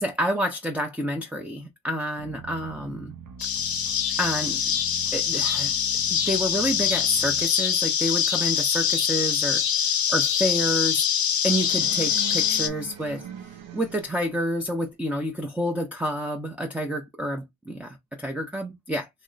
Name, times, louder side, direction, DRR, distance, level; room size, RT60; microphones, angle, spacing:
voice 1, 0.0-3.1 4.2-4.6 5.1-5.7 6.1-11.0 11.4-13.3 13.7-19.1, equal, 5° right, 0.4 m, -28 dB
sound 1, 2.2-7.5, right 7 dB, 45° right, 0.6 m, -43 dB
sound 2, 3.4-12.7, left 8 dB, 55° left, 0.6 m, -24 dB
sound 3, 11.5-14.4, right 9 dB, 85° right, 0.6 m, -41 dB
3.0 x 2.1 x 3.7 m
wide cardioid pair, 85°, 44 cm